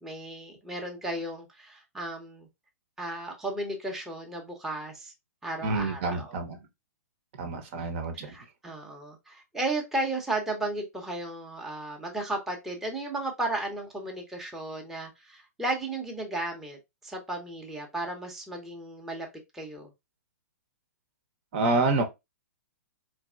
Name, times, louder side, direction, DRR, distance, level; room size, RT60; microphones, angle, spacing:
voice 1, 0.0-2.5 3.0-5.1 5.4-6.4 8.1-19.3 19.5-19.9, right 2 dB, 5° right, 0.8 m, -34 dB
voice 2, 5.6-6.6 7.4-8.3 21.5-22.0, right 3 dB, 45° right, 0.9 m, -27 dB
4.0 x 3.0 x 2.4 m
figure-of-eight pair, 115°, 9 cm